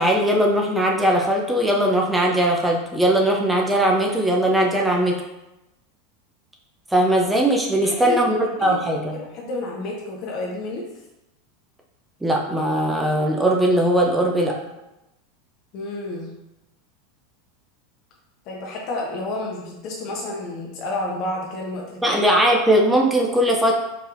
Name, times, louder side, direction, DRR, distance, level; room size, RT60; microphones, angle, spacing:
voice 1, 0.0-5.2 6.9-9.2 12.2-14.6 22.0-23.8, right 1 dB, 10° right, 0 dB, 0.6 m, -19 dB
voice 2, 7.8-8.3 8.6-10.8 15.7-16.3 18.4-22.2, left 2 dB, 45° left, -1 dB, 0.8 m, -30 dB
4.6 x 3.2 x 2.5 m, 0.94 s
figure-of-eight pair, 85°, 0 cm